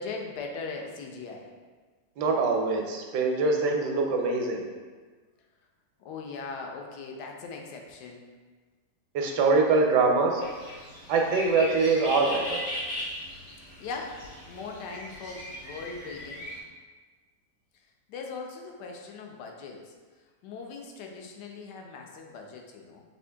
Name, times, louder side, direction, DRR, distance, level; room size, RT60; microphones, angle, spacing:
voice 1, 0.0-1.5 6.0-8.3 13.8-14.2 14.5-16.5 18.1-19.9 20.4-23.0, left 4 dB, 80° left, 1 dB, 1.2 m, -39 dB
voice 2, 2.2-4.6 9.1-10.4 11.1-12.6, right 3 dB, 80° right, 2 dB, 1.2 m, -24 dB
sound 1, 10.4-16.6, left 1 dB, 45° left, 1.0 m, -38 dB
5.0 x 2.8 x 3.3 m, 1.4 s
omnidirectional pair, 1.8 m